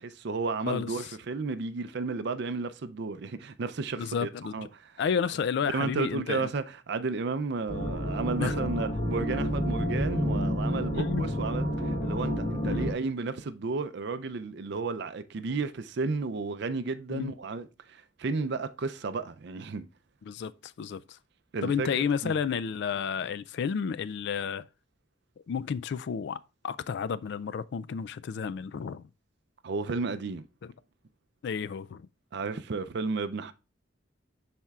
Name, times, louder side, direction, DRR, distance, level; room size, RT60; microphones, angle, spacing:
voice 1, 0.0-5.1 5.7-19.8 21.5-22.4 29.6-30.5 32.3-33.5, right 4 dB, 60° right, 0.5 m, -33 dB
voice 2, 4.0-4.5 5.0-6.5 8.4-8.7 10.9-11.6 12.6-12.9 17.1-17.3 20.3-21.0 21.6-24.7 25.5-26.4 26.6-29.1 31.4-32.1, left 6 dB, 60° left, 0.3 m, -31 dB
sound 1, 7.7-12.9, equal, 30° left, 1.1 m, -29 dB
12.0 x 4.3 x 2.4 m
head